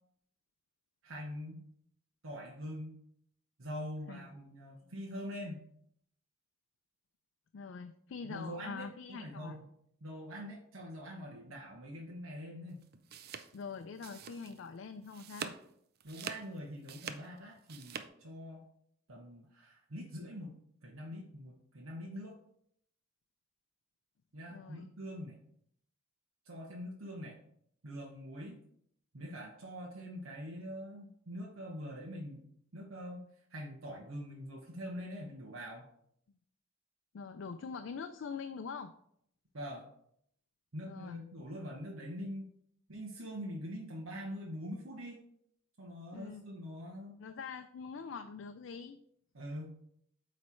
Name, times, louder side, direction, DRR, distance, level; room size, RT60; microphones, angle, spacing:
voice 1, 1.0-1.6 2.2-3.0 3.6-5.7 8.2-9.7 10.0-12.9 15.4-15.5 16.0-18.7 19.1-20.6 20.8-22.4 24.3-25.4 26.4-27.4 27.8-28.6 29.1-32.4 32.7-35.9 39.5-39.9 40.7-42.5 42.9-45.2 45.8-47.2 49.3-49.8, equal, 90° right, -2 dB, 1.1 m, -44 dB
voice 2, 7.5-9.6 13.5-15.5 24.5-24.9 37.1-38.9 40.9-41.2 46.1-46.5 47.2-49.0, left 5 dB, 65° left, 8 dB, 0.4 m, -44 dB
sound 1, 12.8-14.7 15.0-15.7 16.0-18.1, right 7 dB, 50° right, 0.4 m, -45 dB
8.3 x 3.3 x 4.4 m, 0.70 s
head